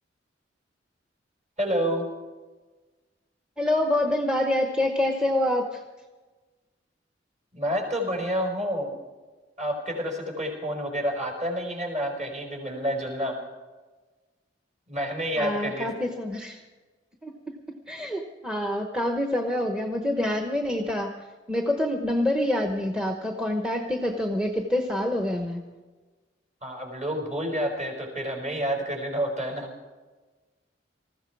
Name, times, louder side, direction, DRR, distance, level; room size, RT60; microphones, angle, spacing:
voice 1, 1.6-2.0 7.5-9.0 9.6-13.4 14.9-15.9 26.6-29.7, equal, 40° right, 1 dB, 4.9 m, -29 dB
voice 2, 3.6-5.8 15.4-16.6 17.2-25.6, left 1 dB, 5° right, 3 dB, 1.0 m, -27 dB
20.0 x 15.0 x 4.7 m, 1.3 s
head